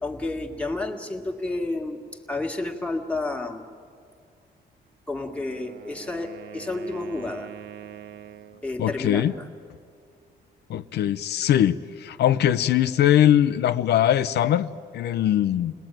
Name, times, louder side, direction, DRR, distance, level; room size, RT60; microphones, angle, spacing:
voice 1, 0.0-2.0 2.3-3.7 5.1-7.5 8.6-9.5, left 2 dB, 5° left, 1 dB, 1.7 m, -30 dB
Wind instrument woodwind instrument, 5.1-8.7, right 10 dB, 75° right, 1.3 m, -43 dB
voice 2, 8.8-9.3 10.7-14.7 14.9-15.7, left 11 dB, 80° left, 11 dB, 0.6 m, -21 dB
29.0 x 20.5 x 9.0 m, 2.3 s
cardioid pair, 155°, 17 cm